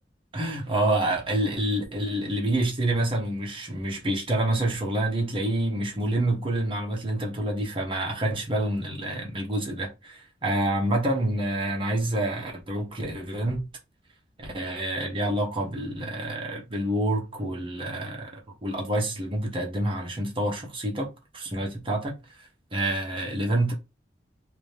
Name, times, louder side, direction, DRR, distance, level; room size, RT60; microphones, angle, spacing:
voice 1, 0.3-13.6 14.4-22.2 22.7-23.7, right 1 dB, 30° right, 1.0 m, -27 dB
2.8 x 2.7 x 3.4 m
head